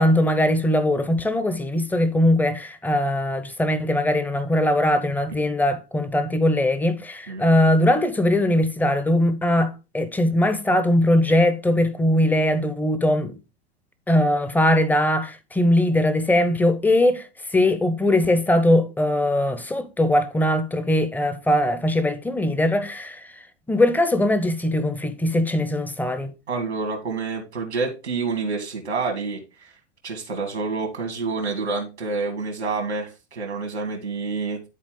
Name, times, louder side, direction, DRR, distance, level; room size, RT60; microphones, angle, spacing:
voice 1, 0.0-13.4 14.1-26.3, left 1 dB, 5° left, 0.8 m, -21 dB
voice 2, 26.5-29.7 30.0-34.6, right 4 dB, 85° right, 1.8 m, -28 dB
10.5 x 4.2 x 3.8 m
figure-of-eight pair, 95°, 33 cm